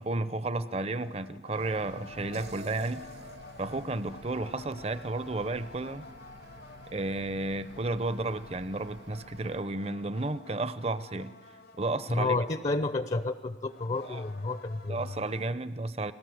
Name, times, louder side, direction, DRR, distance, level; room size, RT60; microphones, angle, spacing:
voice 1, 0.0-3.0 3.6-6.1 6.9-11.3 11.8-12.4 14.1-14.2 14.9-16.1, right 2 dB, 35° right, 14 dB, 0.7 m, -32 dB
sound 1, 0.7-7.1 7.6-13.0 13.6-15.5, left 3 dB, 55° left, 1.0 m, -51 dB
sound 2, 1.6-9.6, equal, 85° right, 5.9 m, -52 dB
sound 3, 2.3-5.4, right 2 dB, 60° right, 1.0 m, -49 dB
voice 2, 12.1-15.0, left 2 dB, 35° left, 10 dB, 0.7 m, -30 dB
29.5 x 20.0 x 7.9 m, 1.4 s
head